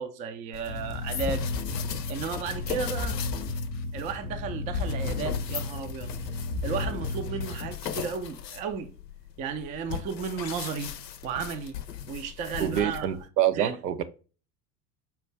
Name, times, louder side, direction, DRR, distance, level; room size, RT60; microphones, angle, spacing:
voice 1, 0.0-1.4 2.1-3.2 3.9-6.1 6.6-8.9 9.4-10.9 11.2-11.8 12.1-13.1 13.6-13.8, right 6 dB, 20° right, 0.3 m, -33 dB
sound 1, 0.5-13.3, left 9 dB, 80° left, 0.6 m, -38 dB
sound 2, 0.7-7.7, left 3 dB, 40° left, 0.7 m, -33 dB
voice 2, 12.6-14.0, right 11 dB, 80° right, 0.6 m, -26 dB
5.5 x 2.5 x 3.0 m
figure-of-eight pair, 75°, 49 cm